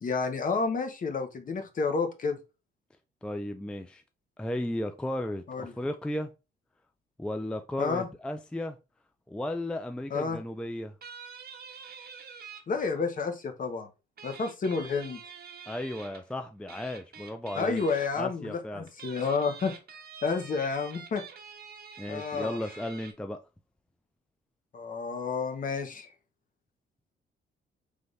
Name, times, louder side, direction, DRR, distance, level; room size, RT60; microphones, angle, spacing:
voice 1, 0.0-2.4 5.5-5.7 7.8-8.1 10.1-10.4 12.7-13.9 14.2-15.2 17.5-19.7 20.2-21.2 22.1-22.6 24.7-26.1, left 4 dB, 45° left, 0.9 m, -30 dB
voice 2, 3.2-4.0 4.4-6.3 7.2-8.8 9.3-10.9 15.7-17.8 18.2-18.9 22.0-23.4, left 1 dB, 5° left, 0.4 m, -35 dB
sound 1, 11.0-12.6 14.2-16.2 16.7-18.1 18.9-23.1, right 6 dB, 50° right, 1.1 m, -47 dB
4.0 x 3.3 x 3.2 m
cardioid pair, 90°, 20 cm